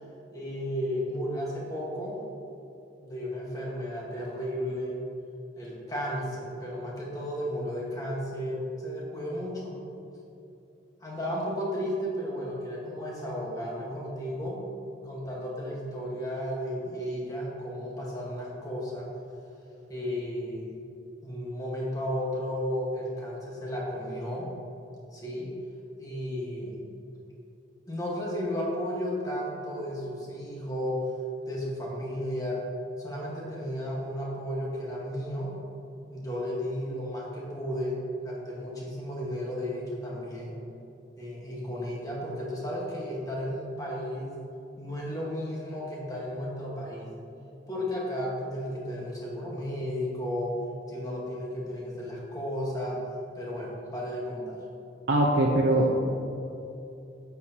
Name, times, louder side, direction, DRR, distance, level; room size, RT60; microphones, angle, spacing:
voice 1, 0.3-2.2 3.0-5.0 5.6-9.8 11.0-14.6 15.0-19.1 19.9-20.7 21.2-24.5 25.1-25.5 26.0-26.8 27.9-31.1 31.5-32.6 33.0-35.5 36.1-38.0 38.2-40.5 41.2-44.3 44.8-47.1 47.7-50.6 50.9-53.0 53.3-54.6, equal, 20° left, -4 dB, 1.4 m, -33 dB
voice 2, 55.1-56.0, right 1 dB, 70° right, -2 dB, 0.6 m, -22 dB
9.2 x 7.0 x 2.9 m, 2.7 s
head